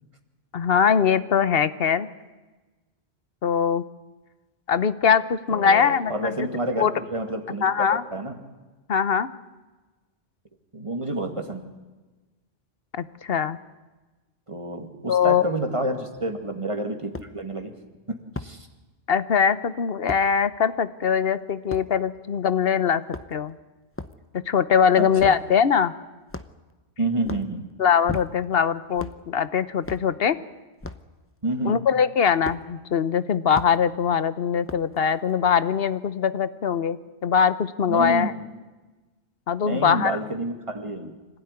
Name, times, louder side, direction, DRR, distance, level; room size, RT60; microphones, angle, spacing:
voice 1, 0.5-2.1 3.4-3.8 4.7-6.3 6.8-6.9 7.6-8.0 8.9-9.3 12.9-13.6 15.1-15.4 19.1-23.0 23.3-23.5 24.3-25.9 27.8-30.4 31.6-37.0 37.2-38.3 39.5-40.2, left 7 dB, 60° left, 14 dB, 1.1 m, -22 dB
voice 2, 5.5-7.6 7.9-8.4 10.7-11.6 14.5-17.7 18.1-18.7 25.0-25.4 27.0-27.7 31.4-31.8 37.9-38.3 39.6-41.2, right 1 dB, 30° right, 5 dB, 2.4 m, -29 dB
sound 1, 16.1-16.2 17.1-17.3 18.4-18.6 20.1-20.3 21.7-21.9 23.0-23.5 23.9-24.2 25.2-25.4 26.3-26.7 27.2-27.5 28.1-28.5 29.0-29.2 29.8-30.1 30.8-31.1 32.5-32.6 33.5-33.7 34.7-35.0, left 2 dB, 15° left, 0.7 m, -35 dB
25.5 x 16.5 x 9.9 m, 1.2 s
omnidirectional pair, 1.1 m